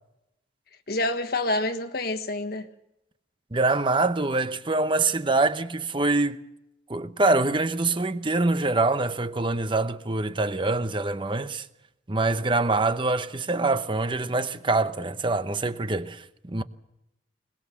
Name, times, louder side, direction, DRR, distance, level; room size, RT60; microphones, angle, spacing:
voice 1, 0.9-2.7, left 2 dB, 60° left, 1.5 m, -27 dB
voice 2, 3.5-6.4 6.9-11.7 12.1-16.6, right 3 dB, 30° right, 0.9 m, -25 dB
22.0 x 20.5 x 7.1 m
head